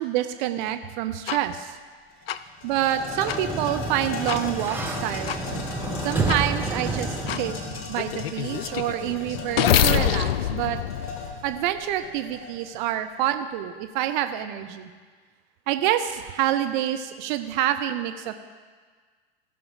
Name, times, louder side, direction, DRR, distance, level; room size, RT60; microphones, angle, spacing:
voice 1, 0.0-1.8 2.6-5.6 6.0-7.5 7.9-10.8 11.4-14.9 15.7-18.3, right 12 dB, 50° right, 9 dB, 0.7 m, -27 dB
sound 1, 1.3-1.4 2.3-2.4 3.3-3.4 4.3-4.4 5.3-5.4 6.3-6.4 7.3-7.4 8.0-11.8, left 10 dB, 75° left, 0.5 m, -25 dB
sound 2, 1.7-1.8 2.1-12.8, left 3 dB, 40° left, 2.0 m, -36 dB
Sliding door, 2.9-7.8, right 3 dB, 5° right, 1.0 m, -30 dB
16.5 x 6.2 x 4.9 m, 1.5 s
figure-of-eight pair, 90°, 31 cm